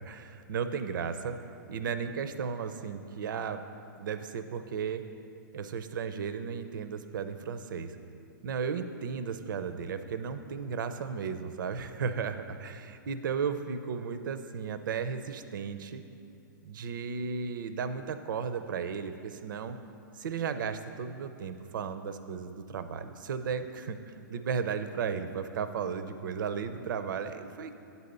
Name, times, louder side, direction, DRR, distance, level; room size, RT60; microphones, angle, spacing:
voice 1, 0.0-1.4 1.7-3.6 4.0-5.0 5.5-8.0 8.4-16.0 16.6-19.8 20.1-27.8, right 6 dB, 75° right, 10 dB, 0.5 m, -35 dB
9.2 x 4.1 x 6.6 m, 2.7 s
hypercardioid pair, 150°, 11 cm